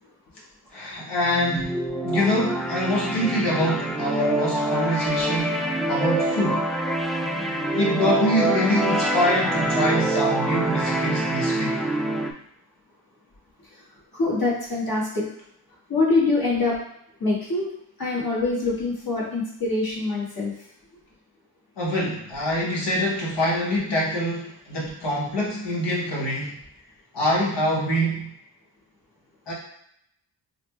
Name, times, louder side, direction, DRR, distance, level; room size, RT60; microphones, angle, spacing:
voice 1, 0.7-1.7 2.0-5.6 5.9-6.6 7.7-11.8 21.8-26.5 27.1-28.3 29.5-29.6, equal, 85° left, -4 dB, 1.2 m, -25 dB
sound 1, 1.2-12.3, right 1 dB, ahead, 0.3 m, -25 dB
voice 2, 14.1-15.3 15.9-16.8 17.2-17.7 18.0-20.5, left 3 dB, 60° left, -6 dB, 1.4 m, -24 dB
3.8 x 2.1 x 3.2 m, 0.74 s
cardioid pair, 45°, 41 cm